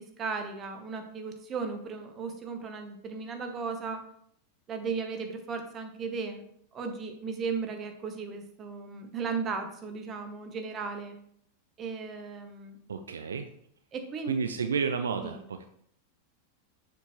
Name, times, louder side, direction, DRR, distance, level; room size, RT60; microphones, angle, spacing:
voice 1, 0.0-4.0 4.7-6.4 6.7-11.2 11.8-12.8 13.9-14.3 15.2-15.4, right 5 dB, 25° right, 6 dB, 0.9 m, -36 dB
voice 2, 12.9-13.5 14.3-15.7, right 6 dB, 70° right, 8 dB, 0.3 m, -31 dB
6.8 x 4.5 x 3.0 m, 0.67 s
figure-of-eight pair, 90°, 0 cm